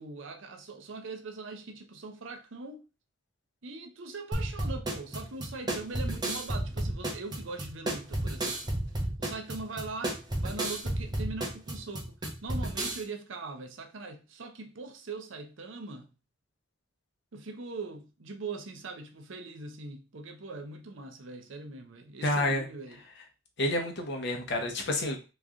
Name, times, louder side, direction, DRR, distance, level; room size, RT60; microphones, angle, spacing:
voice 1, 0.0-2.8 3.6-8.8 9.2-16.1 17.3-23.0, right 3 dB, 70° right, 0.7 m, -41 dB
sound 1, 4.3-13.0, right 1 dB, 20° right, 0.8 m, -32 dB
voice 2, 22.2-22.7 23.6-25.3, left 1 dB, 60° left, 0.9 m, -29 dB
3.1 x 2.5 x 3.6 m
head